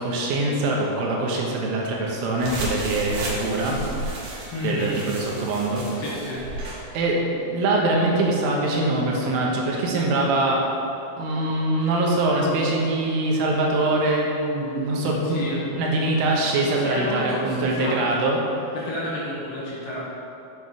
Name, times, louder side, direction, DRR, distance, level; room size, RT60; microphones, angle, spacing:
voice 1, 0.0-3.8 4.6-5.8 6.9-10.6 11.2-15.4 15.8-18.4, right 2 dB, 85° right, -2 dB, 3.9 m, -23 dB
sound 1, 2.4-6.8, right 2 dB, 65° right, 3.2 m, -33 dB
voice 2, 4.5-5.0 6.0-6.5 15.2-15.6 16.5-18.3 18.7-20.0, left 1 dB, 85° left, -7 dB, 1.3 m, -30 dB
8.0 x 7.8 x 6.5 m, 2.8 s
omnidirectional pair, 5.7 m